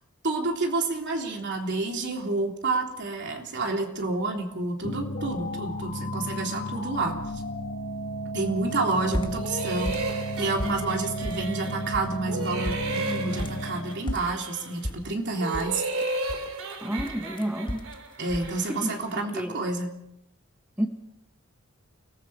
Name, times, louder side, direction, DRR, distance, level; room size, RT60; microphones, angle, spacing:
voice 1, 0.2-7.2 8.3-10.0 10.4-15.8 18.2-19.9, right 3 dB, 55° right, 2 dB, 3.4 m, -29 dB
sound 1, 4.8-14.1, equal, 55° left, 2.6 m, -33 dB
sound 2, 8.7-9.6 9.9-10.9 11.2-11.7 11.9-12.2 12.5-13.7 14.1-16.7 17.0-18.0 18.3-18.5, equal, 20° left, 1.3 m, -34 dB
sound 3, 9.3-12.0 12.3-14.8 15.3-19.0, right 2 dB, 70° right, 3.5 m, -34 dB
voice 2, 16.8-17.9 18.7-18.9 19.3-19.6 20.8-20.9, equal, 5° right, 3 dB, 1.8 m, -30 dB
29.5 x 19.5 x 4.9 m, 0.79 s
head